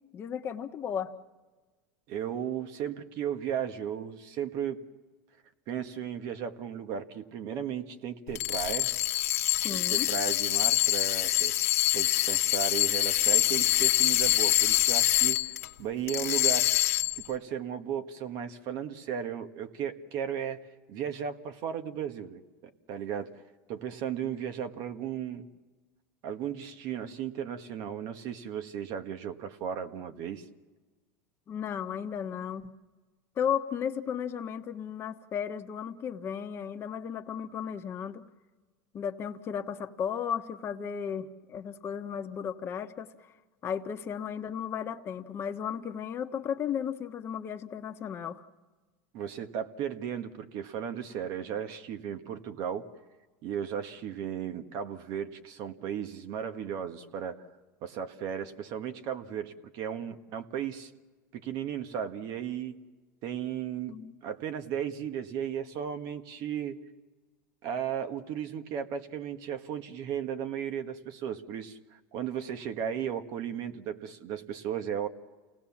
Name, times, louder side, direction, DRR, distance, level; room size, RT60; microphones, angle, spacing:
voice 1, 0.1-1.1 9.6-10.1 31.5-32.7 33.4-38.2 38.9-43.3 43.6-48.4 63.9-64.2, left 8 dB, 30° left, 7 dB, 1.2 m, -34 dB
voice 2, 2.1-4.8 5.7-8.9 9.7-15.5 15.8-16.7 17.3-20.6 20.9-22.4 22.9-23.3 23.7-25.5 26.2-30.4 49.1-52.9 53.4-57.4 57.8-60.9 61.3-62.8 63.2-66.8 67.6-75.1, right 8 dB, 55° right, 8 dB, 1.6 m, -35 dB
sound 1, 8.3-15.7 16.1-17.3, left 15 dB, 85° left, 1.3 m, -25 dB
29.0 x 18.5 x 7.3 m, 1.3 s
supercardioid pair, 125°, 8 cm